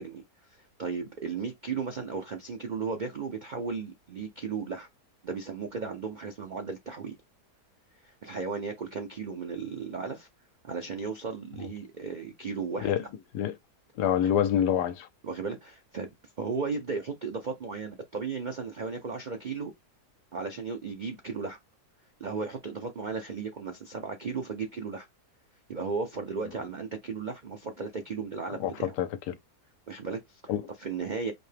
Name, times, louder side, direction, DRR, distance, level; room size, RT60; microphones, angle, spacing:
voice 1, 0.0-4.9 5.2-7.2 8.0-10.3 10.6-12.9 14.2-14.3 15.2-16.1 16.4-19.7 20.3-21.6 22.2-25.1 25.7-28.9 29.9-30.4 30.8-31.3, right 5 dB, 65° right, 0.4 m, -35 dB
voice 2, 14.0-15.1 28.6-28.7 29.0-29.3 30.5-30.6, left 10 dB, 90° left, 1.2 m, -26 dB
4.4 x 2.8 x 3.3 m
omnidirectional pair, 1.7 m